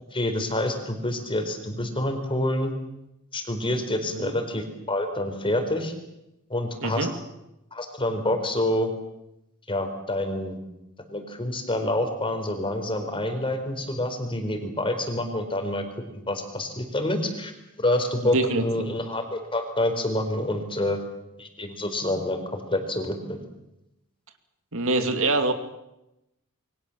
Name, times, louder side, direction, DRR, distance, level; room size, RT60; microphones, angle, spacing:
voice 1, 0.1-2.7 3.3-5.9 6.5-7.1 7.7-8.9 9.7-10.6 11.1-15.8 16.3-17.5 17.8-21.0 21.4-23.4, left 1 dB, 25° left, 6 dB, 4.4 m, -27 dB
voice 2, 6.8-7.1 18.3-18.6 24.7-25.5, right 2 dB, 65° right, 7 dB, 2.7 m, -24 dB
28.0 x 23.5 x 7.3 m, 0.90 s
head